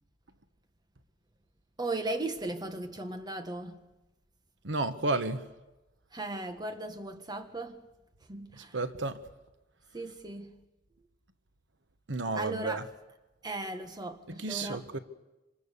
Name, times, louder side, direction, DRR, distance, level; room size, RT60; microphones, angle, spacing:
voice 1, 1.8-3.8 6.1-7.8 8.3-8.8 9.9-10.6 12.4-12.8 13.4-14.9, right 2 dB, 25° right, 1.7 m, -37 dB
voice 2, 4.6-5.4 8.7-9.2 12.1-12.8 14.4-15.0, right 3 dB, 85° right, 1.3 m, -31 dB
27.0 x 25.5 x 6.8 m
head